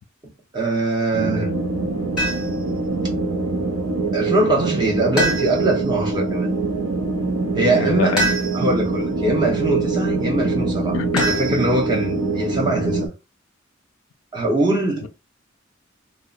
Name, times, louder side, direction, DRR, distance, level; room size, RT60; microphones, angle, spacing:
voice 1, 0.5-1.5 4.1-6.5 7.5-8.2 8.5-13.1 14.3-15.1, right 1 dB, 20° right, 0.7 m, -22 dB
sound 1, 1.1-13.1, right 3 dB, 90° right, 0.5 m, -24 dB
sound 2, 2.2-2.7 5.2-5.9 8.2-8.9 11.2-12.0, right 2 dB, 5° right, 1.4 m, -25 dB
voice 2, 7.8-8.4 10.9-11.3 15.0-15.1, left 7 dB, 85° left, 0.3 m, -25 dB
2.7 x 2.0 x 2.3 m
head